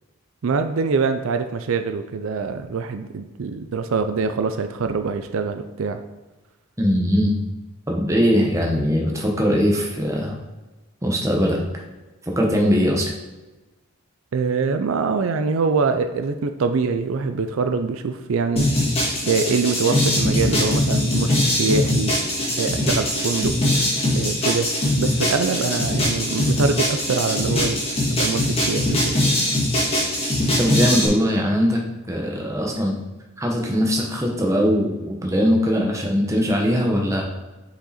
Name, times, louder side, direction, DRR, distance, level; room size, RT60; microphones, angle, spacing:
voice 1, 0.4-6.0 14.3-18.7 19.2-22.1 22.6-23.5 24.1-24.7 25.0-27.8 28.1-29.1, right 4 dB, 70° right, 8 dB, 0.4 m, -24 dB
voice 2, 6.8-7.4 7.9-10.4 11.0-11.6 12.3-13.1 30.6-31.8 32.1-33.0 33.4-37.2, equal, 15° right, 0 dB, 1.0 m, -20 dB
sound 1, 18.6-31.1, left 1 dB, 30° left, 1.6 m, -21 dB
6.4 x 5.0 x 4.2 m, 1.1 s
head